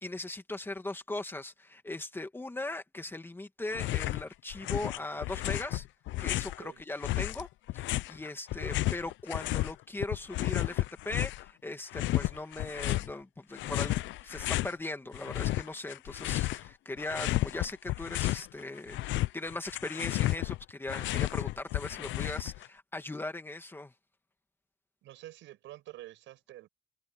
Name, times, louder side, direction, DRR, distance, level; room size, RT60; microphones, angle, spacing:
voice 1, 0.0-5.8 6.2-7.5 7.7-23.9, left 2 dB, 10° left, 2.4 m, -39 dB
sound 1, 3.7-4.2 4.5-6.6 7.0-9.7 10.0-11.5 11.9-13.1 13.6-14.7 15.1-16.7 17.0-18.5 18.8-22.7, left 17 dB, 80° left, 0.5 m, -32 dB
voice 2, 8.5-8.9 25.0-26.7, right 15 dB, 90° right, 7.4 m, -49 dB
cardioid pair, 140°, 19 cm